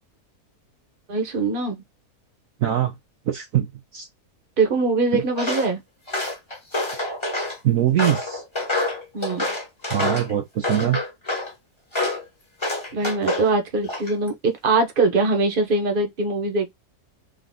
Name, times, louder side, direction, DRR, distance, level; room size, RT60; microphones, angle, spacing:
voice 1, 1.1-1.8 4.6-5.8 9.1-9.5 12.9-16.7, right 3 dB, 35° right, 1.3 m, -22 dB
voice 2, 2.6-2.9 3.3-4.1 5.1-5.2 7.6-8.4 9.9-11.0, right 11 dB, 65° right, 1.1 m, -22 dB
Walk footsteps, 5.4-5.7 6.1-7.6 8.0-10.3 10.6-11.5 11.9-12.2 12.6-13.5 13.9-14.3, left 2 dB, 20° left, 1.6 m, -27 dB
3.8 x 3.3 x 3.8 m
omnidirectional pair, 1.6 m